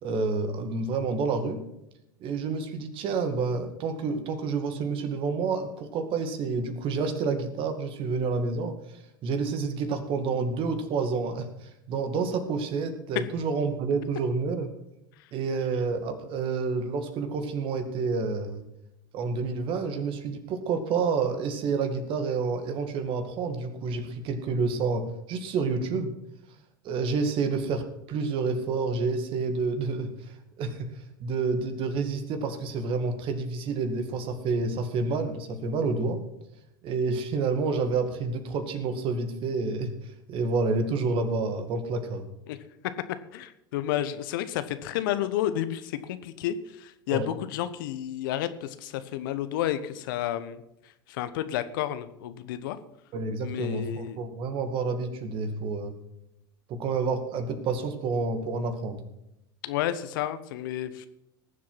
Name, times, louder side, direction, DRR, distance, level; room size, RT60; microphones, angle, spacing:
voice 1, 0.0-1.6 2.2-14.7 15.3-18.6 19.1-26.1 26.8-30.9 31.2-36.2 36.8-39.9 40.3-42.3 47.1-47.3 53.1-55.9 56.7-59.0, right 4 dB, 45° right, 8 dB, 2.1 m, -29 dB
voice 2, 43.3-50.6 51.1-52.8 53.4-54.2 59.6-61.1, left 12 dB, 65° left, 12 dB, 1.0 m, -31 dB
19.0 x 7.6 x 5.8 m, 0.84 s
hypercardioid pair, 85°, 12 cm